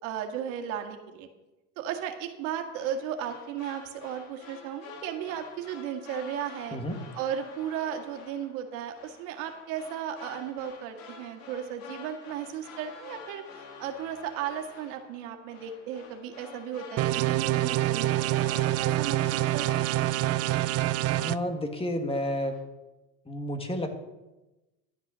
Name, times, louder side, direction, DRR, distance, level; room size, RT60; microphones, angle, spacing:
voice 1, 0.0-1.3 1.8-6.8 7.2-20.0, right 9 dB, 80° right, 4 dB, 1.9 m, -35 dB
sound 1, 2.7-21.8 22.1-22.6, left 5 dB, 75° left, 2.5 m, -49 dB
sound 2, 17.0-21.3, right 15 dB, 40° right, 0.5 m, -26 dB
voice 2, 21.1-22.6 23.3-23.9, left 1 dB, 15° left, 6 dB, 1.7 m, -31 dB
12.0 x 8.3 x 6.2 m, 1.0 s
supercardioid pair, 115°, 37 cm